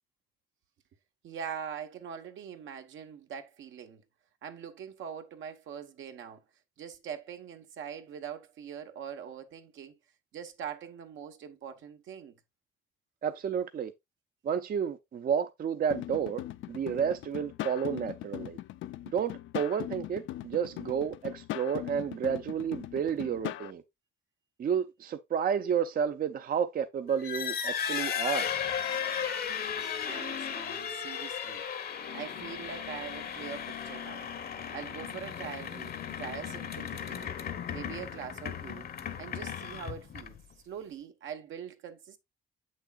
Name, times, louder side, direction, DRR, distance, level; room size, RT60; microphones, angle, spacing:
voice 1, 1.2-4.0 4.4-6.4 6.8-10.0 10.3-12.4 29.8-31.6 32.1-34.3 34.7-37.3 37.7-38.9 39.2-40.4 40.6-42.2, right 8 dB, 75° right, 1.1 m, -43 dB
voice 2, 13.2-13.9 14.4-16.4 16.7-18.6 19.1-23.8 24.6-28.5, right 7 dB, 45° right, 0.6 m, -31 dB
sound 1, 15.9-23.7, left 14 dB, 80° left, 0.4 m, -40 dB
sound 2, 27.1-40.5, left 8 dB, 50° left, 0.9 m, -36 dB
7.3 x 6.4 x 2.3 m
cardioid pair, 90°, 20 cm